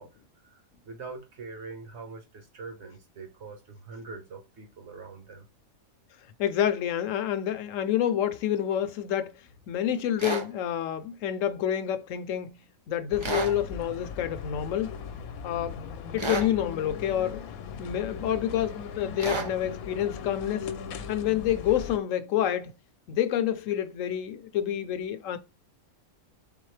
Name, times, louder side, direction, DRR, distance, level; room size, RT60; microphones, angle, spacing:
voice 1, 0.0-5.5, right 4 dB, 55° right, 1.4 m, -43 dB
voice 2, 6.4-14.9 15.4-15.8 16.1-17.5 17.8-20.7 21.1-22.8 23.1-25.4, left 10 dB, 70° left, 0.9 m, -28 dB
sound 1, 10.2-10.5 13.2-13.6 16.2-16.5 19.2-19.5, right 3 dB, 35° right, 0.5 m, -30 dB
sound 2, 13.1-22.0, left 6 dB, 90° left, 1.1 m, -39 dB
4.2 x 3.8 x 3.2 m
omnidirectional pair, 1.5 m